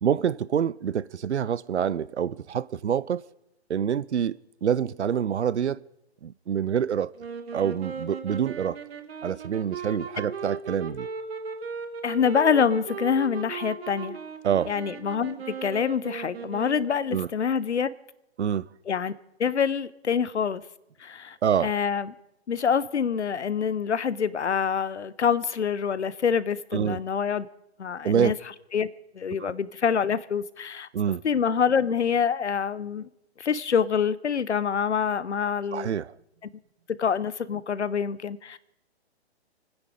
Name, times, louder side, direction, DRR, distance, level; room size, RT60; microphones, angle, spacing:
voice 1, 0.0-3.2 3.7-4.3 4.6-5.8 6.2-7.1 7.5-8.8 9.2-11.1 14.4-14.7 17.1-17.3 18.4-18.7 21.4-21.7 26.7-27.0 28.0-28.3 29.4-29.5 30.9-31.2 35.7-36.1, right 8 dB, 85° right, 0.6 m, -26 dB
sound 1, 7.2-17.2, right 5 dB, 65° right, 1.7 m, -37 dB
voice 2, 12.0-14.2 14.7-17.9 18.9-19.1 19.4-20.6 21.0-21.4 21.6-22.1 22.5-27.5 27.8-28.3 28.7-28.9 29.2-30.9 31.2-33.1 33.4-35.9 37.0-38.6, left 7 dB, 85° left, 0.8 m, -26 dB
28.5 x 9.8 x 5.0 m
hypercardioid pair, 130°, 33 cm